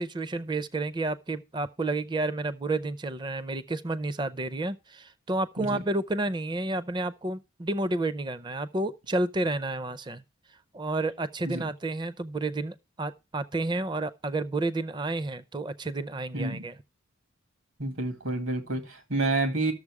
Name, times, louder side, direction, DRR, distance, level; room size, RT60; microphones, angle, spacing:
voice 1, 0.0-10.2 10.7-16.8, right 2 dB, 20° right, 0.5 m, -30 dB
voice 2, 16.3-16.7 17.8-19.7, right 2 dB, 70° right, 2.1 m, -29 dB
12.0 x 6.9 x 4.7 m
head